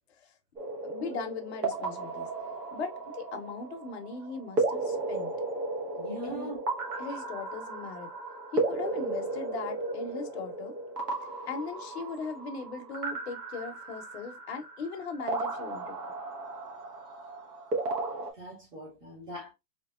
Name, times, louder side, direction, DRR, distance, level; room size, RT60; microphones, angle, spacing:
sound 1, 0.6-18.3, right 2 dB, 75° right, 1.5 m, -35 dB
voice 1, 0.8-2.3 2.7-5.3 6.2-6.5 7.0-8.1 8.5-10.7 11.5-16.0, left 4 dB, 40° left, 0.7 m, -39 dB
voice 2, 6.0-6.6 18.3-19.5, right 1 dB, 10° right, 0.7 m, -41 dB
3.5 x 2.7 x 2.3 m
hypercardioid pair, 165°, 49 cm